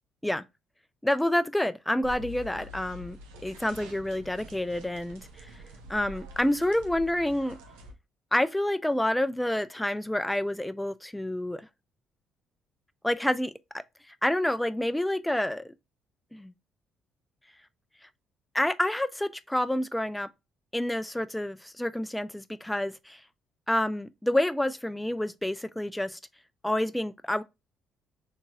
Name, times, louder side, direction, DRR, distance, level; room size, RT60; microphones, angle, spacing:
voice 1, 1.0-3.2 3.4-5.5 5.9-7.6 8.3-11.7 13.0-13.5 14.1-15.7 16.3-16.5 18.5-20.3 20.7-23.2 23.7-26.2 26.6-27.4, left 1 dB, 5° left, 0.4 m, -28 dB
sound 1, 2.0-7.9, equal, 70° right, 0.6 m, -46 dB
3.8 x 2.6 x 2.3 m
figure-of-eight pair, 45°, 0 cm